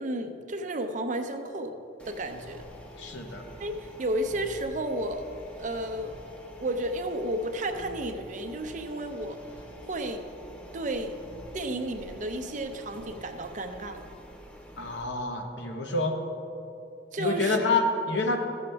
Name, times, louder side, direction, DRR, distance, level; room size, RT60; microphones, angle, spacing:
voice 1, 0.0-1.7 2.0-2.6 3.6-5.3 5.6-6.2 6.6-9.4 9.9-10.2 10.7-11.2 11.5-14.0 17.1-17.6, right 1 dB, 45° right, 6 dB, 0.6 m, -32 dB
sound 1, 2.0-15.0, equal, 5° left, 0.6 m, -47 dB
voice 2, 3.0-3.4 14.8-16.2 17.2-18.4, left 3 dB, 85° left, 3 dB, 1.0 m, -27 dB
13.5 x 7.1 x 3.4 m, 2.9 s
head